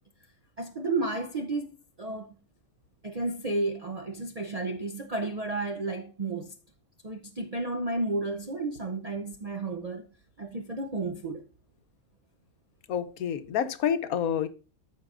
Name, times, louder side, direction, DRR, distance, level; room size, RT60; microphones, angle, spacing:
voice 1, 0.6-1.7 2.0-2.3 3.0-6.5 7.0-10.0 10.4-11.4, right 2 dB, 55° right, 0.4 m, -32 dB
voice 2, 12.9-14.5, left 8 dB, 80° left, 1.2 m, -28 dB
13.0 x 4.7 x 2.5 m
omnidirectional pair, 1.5 m